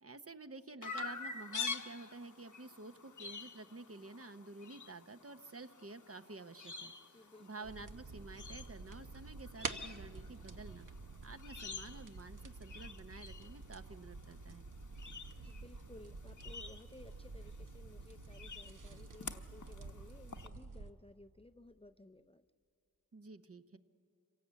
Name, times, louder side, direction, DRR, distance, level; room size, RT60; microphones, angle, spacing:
voice 1, 0.0-6.9 7.4-10.9 11.2-14.6 23.1-23.8, right 3 dB, 45° right, 10 dB, 0.9 m, -50 dB
Chirp tweet, 0.8-20.5, left 5 dB, 65° left, 1.0 m, -49 dB
voice 2, 7.1-7.7 15.1-22.4, left 2 dB, 15° left, 11 dB, 0.5 m, -58 dB
sound 1, 7.6-20.9, right 4 dB, 70° right, 1.0 m, -49 dB
26.0 x 17.0 x 8.2 m, 2.4 s
wide cardioid pair, 45°, 33 cm